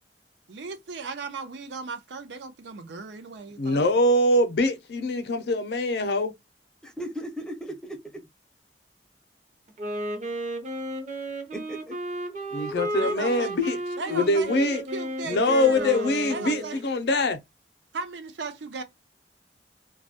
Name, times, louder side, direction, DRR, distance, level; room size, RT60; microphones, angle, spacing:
voice 1, 0.5-4.0 13.0-13.5 14.0-16.8 17.9-18.8, right 4 dB, 85° right, 0.5 m, -36 dB
voice 2, 3.6-6.3 12.5-13.8 14.1-14.8 15.2-17.4, left 1 dB, 65° left, 0.5 m, -23 dB
voice 3, 6.8-8.2 11.5-12.0, right 1 dB, 5° left, 0.4 m, -37 dB
Wind instrument woodwind instrument, 9.7-16.9, right 1 dB, 45° right, 0.6 m, -33 dB
2.2 x 2.0 x 2.7 m
head